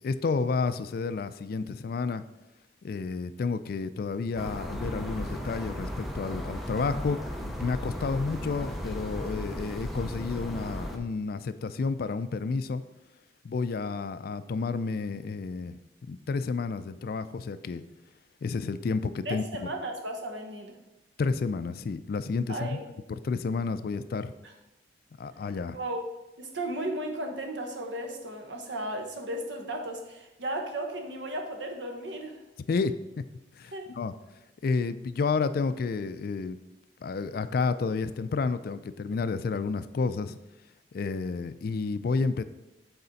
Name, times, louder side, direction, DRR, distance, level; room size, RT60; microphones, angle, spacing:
voice 1, 0.0-2.2 2.8-12.8 13.4-15.8 16.1-17.8 18.4-19.7 21.2-22.8 23.1-24.3 25.2-25.8 32.7-33.2 33.6-34.1 34.6-36.6 37.0-40.4 40.9-42.4, left 4 dB, 55° left, 13 dB, 0.3 m, -30 dB
sound 1, 4.4-11.0, equal, ahead, 0.6 m, -35 dB
voice 2, 19.2-20.8 22.5-22.8 24.4-24.5 25.7-26.0 26.4-32.4 33.7-33.9, right 1 dB, 85° right, 4 dB, 1.1 m, -35 dB
8.0 x 4.2 x 4.0 m, 1.0 s
head